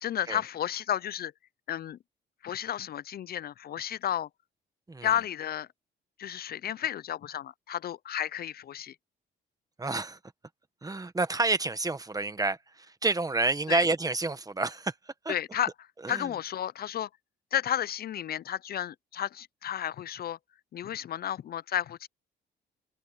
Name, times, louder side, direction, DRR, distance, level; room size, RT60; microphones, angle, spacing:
voice 1, 0.0-1.3 1.7-2.0 2.4-4.3 5.0-5.7 6.2-9.0 13.7-13.8 15.3-15.7 16.1-17.1 17.5-20.4 20.7-22.1, left 10 dB, 50° left, 0.4 m, -32 dB
voice 2, 9.8-10.2 10.8-14.9 15.2-15.3 16.0-16.3, right 3 dB, 20° right, 1.3 m, -29 dB
open air
cardioid pair, 90°, 20 cm